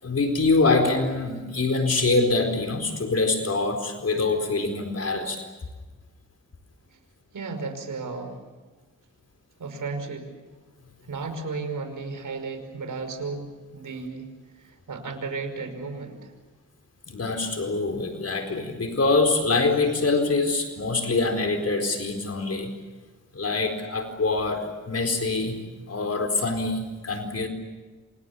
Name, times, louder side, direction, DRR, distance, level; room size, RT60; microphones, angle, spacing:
voice 1, 0.0-5.4 17.1-22.7 23.3-25.6 25.9-27.5, left 3 dB, 50° left, 5 dB, 4.4 m, -24 dB
voice 2, 7.3-8.4 9.6-10.4 11.0-14.3 14.6-16.4, right 4 dB, 75° right, 7 dB, 5.4 m, -34 dB
28.0 x 27.0 x 7.1 m, 1.2 s
wide cardioid pair, 85°, 32 cm